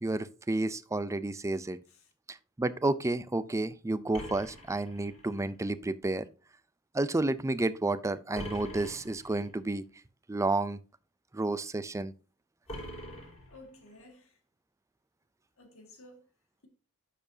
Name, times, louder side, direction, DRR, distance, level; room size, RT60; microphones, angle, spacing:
voice 1, 0.0-1.8 2.3-6.3 6.9-9.8 10.3-10.8 11.3-12.1, right 2 dB, 15° right, 0.4 m, -31 dB
sound 1, 4.1-5.5 8.3-9.5 12.7-14.0, equal, 30° left, 4.7 m, -44 dB
voice 2, 13.5-14.4 15.6-16.2, left 2 dB, 65° left, 2.0 m, -54 dB
10.5 x 6.7 x 2.8 m
head